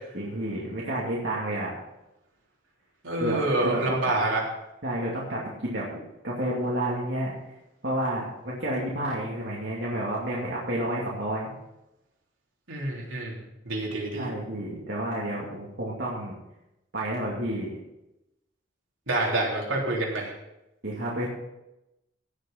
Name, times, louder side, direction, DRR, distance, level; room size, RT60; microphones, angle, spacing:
voice 1, 0.1-1.7 3.2-4.0 4.8-5.9 6.2-7.3 7.8-11.5 14.1-16.4 16.9-17.7 20.8-21.3, right 1 dB, 55° right, -5 dB, 2.5 m, -30 dB
voice 2, 3.0-4.4 12.7-13.4 13.7-14.3 19.1-20.3, right 2 dB, 75° right, -2 dB, 3.6 m, -27 dB
16.5 x 6.6 x 5.9 m, 0.92 s
head